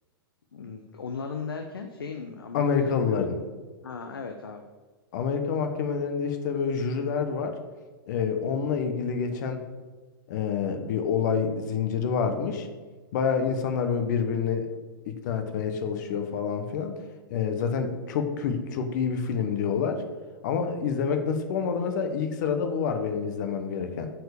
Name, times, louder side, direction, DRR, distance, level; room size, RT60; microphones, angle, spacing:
voice 1, 0.5-3.2 3.8-4.6, left 5 dB, 80° left, 5 dB, 0.8 m, -37 dB
voice 2, 2.5-3.4 5.1-7.6 8.1-9.6 10.3-12.7 13.1-14.7 15.1-17.0 17.3-20.0 20.4-24.1, left 6 dB, 55° left, 7 dB, 1.2 m, -27 dB
7.9 x 4.7 x 6.6 m, 1.4 s
hypercardioid pair, 110°, 12 cm